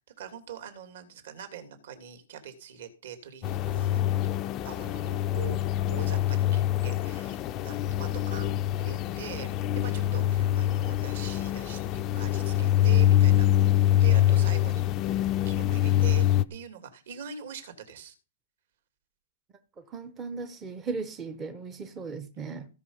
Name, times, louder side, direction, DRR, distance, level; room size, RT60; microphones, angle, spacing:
voice 1, 0.2-4.3 4.6-5.6 5.9-8.5 8.8-18.1, right 8 dB, 55° right, 2.7 m, -43 dB
sound 1, 3.4-16.4, left 12 dB, 20° left, 0.5 m, -25 dB
voice 2, 19.9-22.7, right 4 dB, 15° right, 0.7 m, -37 dB
16.0 x 5.9 x 5.6 m
hypercardioid pair, 175°, 0 cm